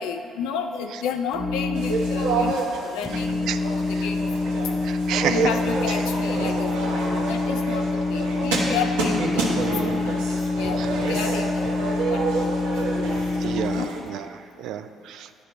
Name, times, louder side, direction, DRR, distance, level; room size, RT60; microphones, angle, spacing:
voice 1, 0.0-4.3 5.2-6.9 7.3-11.7 12.1-12.7 13.7-14.2, left 7 dB, 80° left, 6 dB, 0.5 m, -32 dB
sound 1, 1.3-2.5 3.0-13.8, left 3 dB, 35° left, 0.6 m, -26 dB
sound 2, 1.7-14.0, right 3 dB, 90° right, 1.1 m, -28 dB
voice 2, 4.8-5.4 6.4-6.5 13.4-14.2 14.6-15.3, right 10 dB, 70° right, 10 dB, 0.3 m, -30 dB
10.0 x 5.3 x 4.3 m, 2.3 s
hypercardioid pair, 55°, 0 cm